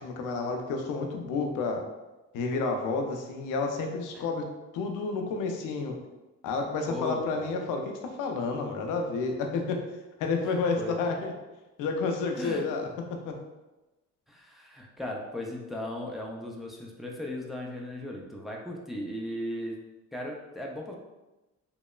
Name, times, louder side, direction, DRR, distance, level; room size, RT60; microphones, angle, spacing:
voice 1, 0.0-1.8 2.3-4.4 4.7-5.9 6.4-9.8 10.2-11.3 11.8-13.4, left 4 dB, 90° left, 3 dB, 0.5 m, -30 dB
voice 2, 6.9-7.6 10.4-10.9 12.4-12.6 14.3-19.8 20.1-20.9, left 1 dB, ahead, -1 dB, 0.3 m, -37 dB
3.0 x 2.0 x 2.2 m, 1.1 s
cardioid pair, 90°, 30 cm